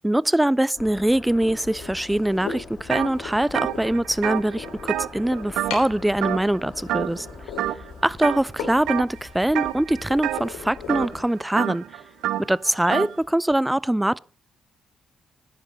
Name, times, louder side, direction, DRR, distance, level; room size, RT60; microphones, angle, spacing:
voice 1, 0.0-7.3 8.0-12.0 12.4-14.2, right 1 dB, 10° right, 0.5 m, -23 dB
sound 1, 0.8-11.3, left 5 dB, 50° left, 2.9 m, -44 dB
sound 2, 1.4-13.2, left 5 dB, 90° left, 3.2 m, -40 dB
sound 3, 2.9-3.1 3.4-5.9 6.2-6.6 6.9-7.3 7.6-8.4 8.9-9.2 9.5-13.1, right 13 dB, 80° right, 0.6 m, -28 dB
12.0 x 10.5 x 5.1 m
supercardioid pair, 55°, 0 cm